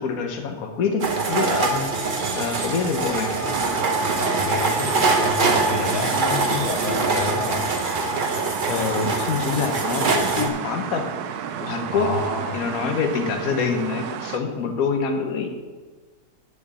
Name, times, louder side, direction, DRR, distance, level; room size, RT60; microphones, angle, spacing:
voice 1, 0.0-3.5 8.6-12.1 12.5-15.5, left 5 dB, 65° left, 4 dB, 1.4 m, -26 dB
sound 1, 1.0-10.5, right 3 dB, 40° right, 0.8 m, -23 dB
sound 2, 3.5-14.4, right 8 dB, 90° right, 1.1 m, -33 dB
voice 2, 4.1-7.7 11.9-12.7, left 4 dB, 85° left, 3 dB, 1.4 m, -29 dB
9.9 x 4.7 x 6.8 m, 1.4 s
omnidirectional pair, 1.6 m